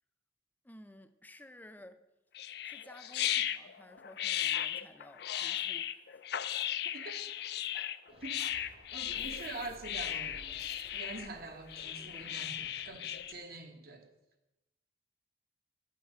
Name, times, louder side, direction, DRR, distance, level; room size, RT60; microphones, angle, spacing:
voice 1, 0.6-2.0 2.6-6.0, left 1 dB, 10° left, 10 dB, 0.5 m, -54 dB
sound 1, 2.3-13.3, left 11 dB, 65° left, 0.4 m, -36 dB
voice 2, 6.8-7.2 8.2-8.5 8.9-10.4 10.9-14.1, right 3 dB, 60° right, 4 dB, 1.3 m, -45 dB
sound 2, 8.1-13.4, right 1 dB, 35° right, 0.8 m, -55 dB
9.9 x 5.6 x 7.6 m, 0.97 s
head